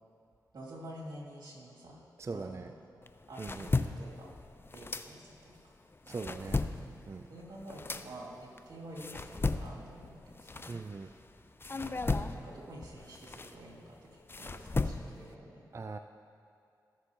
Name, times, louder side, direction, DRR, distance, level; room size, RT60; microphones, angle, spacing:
voice 1, 0.5-2.0 2.3-2.8 3.3-4.3 4.7-5.5 6.0-6.4 7.3-11.1 11.7-15.7, right 1 dB, 75° right, -5 dB, 2.5 m, -49 dB
voice 2, 2.2-2.7 3.4-3.7 6.1-6.6 7.1-7.3 10.7-11.1 15.7-16.0, right 4 dB, 40° right, 8 dB, 0.4 m, -40 dB
sound 1, 3.0-5.6 5.9-11.2 11.6-15.3, left 3 dB, 30° left, 0.4 m, -36 dB
16.0 x 6.5 x 2.9 m, 2.5 s
cardioid pair, 40°, 8 cm